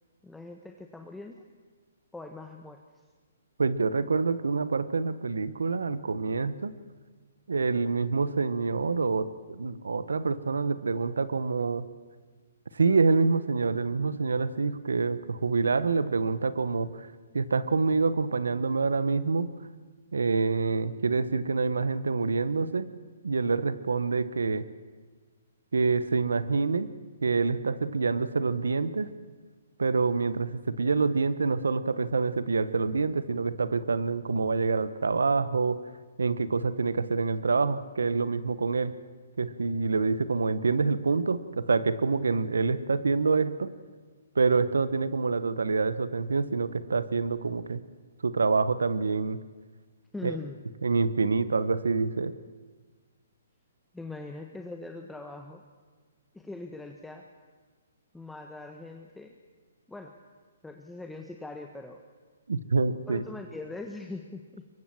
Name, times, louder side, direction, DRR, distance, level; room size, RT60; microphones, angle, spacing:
voice 1, 0.2-1.4 2.1-2.8 50.1-50.6 53.9-55.6 56.3-57.3 58.1-59.3 59.9-60.1 60.6-62.0 63.1-64.6, left 2 dB, 5° left, 4 dB, 1.2 m, -41 dB
voice 2, 3.6-6.7 7.5-11.9 12.7-17.1 17.3-19.5 20.1-22.9 23.2-24.7 25.7-26.9 27.2-29.1 29.8-35.8 36.2-38.9 39.4-43.7 44.3-47.8 48.2-49.4 50.2-50.4 50.8-52.3 62.5-63.2, right 4 dB, 85° right, 15 dB, 1.2 m, -26 dB
23.0 x 20.0 x 7.6 m, 1.5 s
hypercardioid pair, 145°, 0 cm